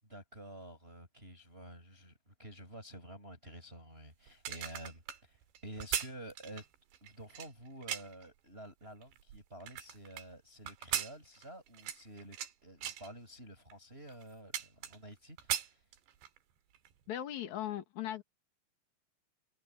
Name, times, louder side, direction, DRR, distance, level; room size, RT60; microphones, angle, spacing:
voice 1, 0.0-6.7 7.0-12.4 12.6-15.8, right 1 dB, 10° right, 7.8 m, -50 dB
sound 1, 4.3-8.3 8.8-10.2 10.7-12.5 12.8-13.1 13.7-13.8 14.1-15.1 15.4-16.4 16.7-16.9, right 10 dB, 70° right, 3.9 m, -39 dB
voice 2, 17.1-18.2, left 11 dB, 55° left, 2.4 m, -38 dB
omnidirectional pair, 5.4 m